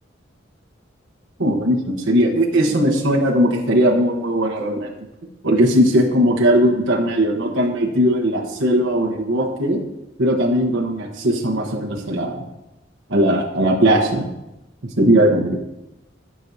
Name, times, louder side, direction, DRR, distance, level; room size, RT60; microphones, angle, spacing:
voice 1, 1.4-4.9 5.4-9.8 10.2-12.4 13.1-14.3 14.8-15.6, equal, 85° right, -1 dB, 1.2 m, -18 dB
14.5 x 6.3 x 2.8 m, 0.93 s
head